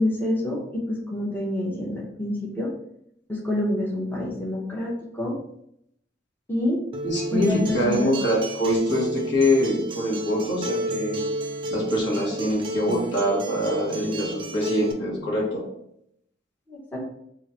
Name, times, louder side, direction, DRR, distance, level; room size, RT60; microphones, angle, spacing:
voice 1, 0.0-2.7 3.3-5.4 6.5-6.8 7.3-8.1 16.7-17.0, left 1 dB, 10° left, -4 dB, 0.6 m, -27 dB
Acoustic guitar, 6.9-14.9, right 1 dB, 25° right, 0.3 m, -32 dB
voice 2, 7.0-11.2 11.7-15.6, equal, 70° left, -4 dB, 1.2 m, -24 dB
3.0 x 2.4 x 4.1 m, 0.74 s
head